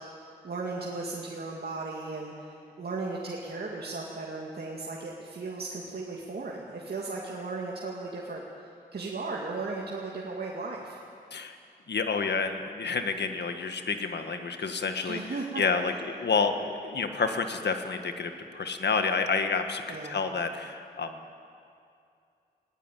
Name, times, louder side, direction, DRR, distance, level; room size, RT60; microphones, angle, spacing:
voice 1, 0.0-8.4 8.9-11.0 15.0-15.6 19.9-20.2, right 3 dB, 65° right, -3 dB, 2.4 m, -36 dB
voice 2, 11.9-21.3, left 4 dB, 75° left, 7 dB, 1.6 m, -29 dB
21.0 x 16.5 x 9.2 m, 2.5 s
cardioid pair, 65°, 18 cm